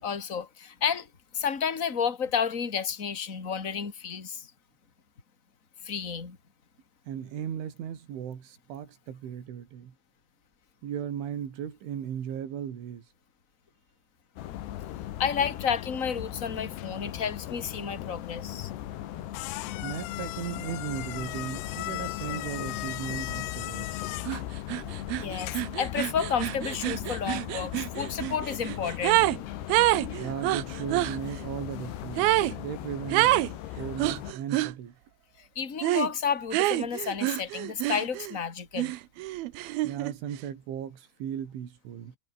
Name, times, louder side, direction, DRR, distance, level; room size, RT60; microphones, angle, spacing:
voice 1, 0.0-1.1 1.3-4.5 5.8-6.4 15.2-18.7 25.2-29.2 35.4-38.9, left 7 dB, 25° left, 2.1 m, -31 dB
voice 2, 7.1-9.9 10.8-13.0 19.8-23.9 30.2-34.9 39.8-42.2, right 9 dB, 75° right, 5.8 m, -36 dB
sound 1, 14.4-34.3, left 13 dB, 65° left, 3.4 m, -38 dB
sound 2, 18.5-25.8, left 20 dB, 80° left, 2.7 m, -39 dB
sound 3, 24.3-24.4 24.7-29.4 29.7-31.2 32.2-32.6 33.1-33.5 34.0-34.7 35.8-36.1 36.5-38.4 38.8-40.1, right 17 dB, 90° right, 2.1 m, -27 dB
omnidirectional pair, 5.6 m